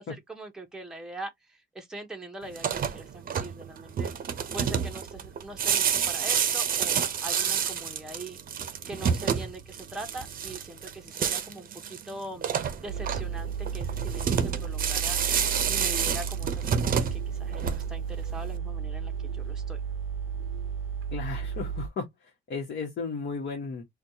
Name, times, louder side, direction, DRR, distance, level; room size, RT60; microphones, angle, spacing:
voice 1, 0.0-4.1 4.5-8.4 8.9-12.5 12.8-15.4 15.7-19.8, right 1 dB, 5° right, 0.7 m, -42 dB
sound 1, 2.5-18.1, right 7 dB, 45° right, 0.6 m, -29 dB
sound 2, 12.9-21.9, right 7 dB, 90° right, 0.5 m, -33 dB
voice 2, 21.1-23.8, left 4 dB, 60° left, 1.1 m, -35 dB
4.2 x 2.3 x 2.7 m
cardioid pair, 90°, 20 cm